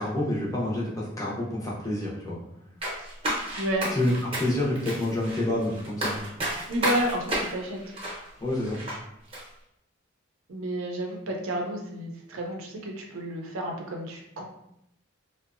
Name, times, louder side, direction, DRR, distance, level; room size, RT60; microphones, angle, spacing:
voice 1, 0.0-2.4 3.9-6.1 8.4-8.8, left 1 dB, 15° left, -5 dB, 0.5 m, -28 dB
sound 1, 2.8-9.0 9.3-9.4, right 1 dB, 25° right, 0.7 m, -32 dB
voice 2, 3.6-3.9 6.7-7.8 10.5-14.4, right 1 dB, 85° right, 1 dB, 0.5 m, -31 dB
2.6 x 2.1 x 2.4 m, 0.79 s
head